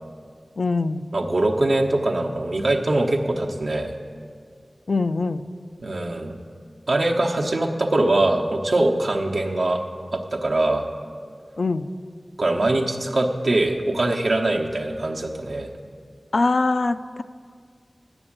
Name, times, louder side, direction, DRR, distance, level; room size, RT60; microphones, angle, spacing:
voice 1, 0.6-1.0 4.9-5.4 11.6-11.9 16.3-17.2, left 3 dB, 85° left, 10 dB, 0.3 m, -22 dB
voice 2, 1.1-3.9 5.8-6.3 6.9-9.8 10.1-10.8 12.4-15.7, right 2 dB, 80° right, 1 dB, 0.9 m, -22 dB
8.7 x 7.0 x 8.5 m, 2.1 s
wide cardioid pair, 70°, 0 cm